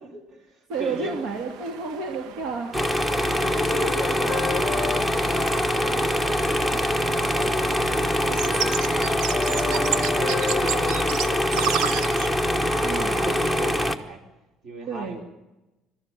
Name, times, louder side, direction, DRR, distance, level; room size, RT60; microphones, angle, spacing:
voice 1, 0.0-1.1 2.7-8.9 9.4-9.8 10.1-12.1 12.4-14.2 14.6-15.2, right 3 dB, 45° right, 4 dB, 4.1 m, -38 dB
voice 2, 0.7-2.7 9.6-10.1 12.8-13.3 14.9-15.2, right 4 dB, 65° right, 3 dB, 2.9 m, -31 dB
sound 1, 0.7-13.7, right 8 dB, 85° right, 1.2 m, -35 dB
sound 2, 2.7-14.0, equal, 10° right, 1.1 m, -24 dB
Wind instrument woodwind instrument, 3.4-6.9 7.7-11.5, left 10 dB, 35° left, 0.7 m, -34 dB
22.0 x 13.5 x 10.0 m, 1.0 s
cardioid pair, 170°, 0 cm